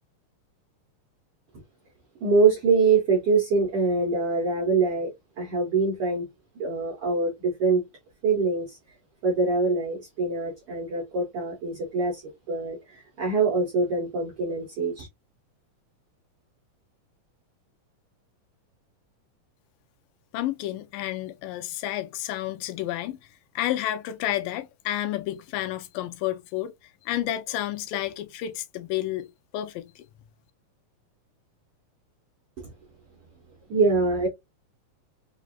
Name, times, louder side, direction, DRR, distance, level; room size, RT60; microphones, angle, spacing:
voice 1, 2.2-5.1 5.4-6.3 6.6-7.8 8.2-8.8 9.2-12.2 12.5-15.1 33.7-34.3, right 4 dB, 70° right, 1.5 m, -24 dB
voice 2, 20.3-23.2 23.6-26.7 27.1-29.3 29.5-30.0, left 13 dB, 90° left, 2.3 m, -30 dB
5.3 x 2.4 x 2.3 m
omnidirectional pair, 3.8 m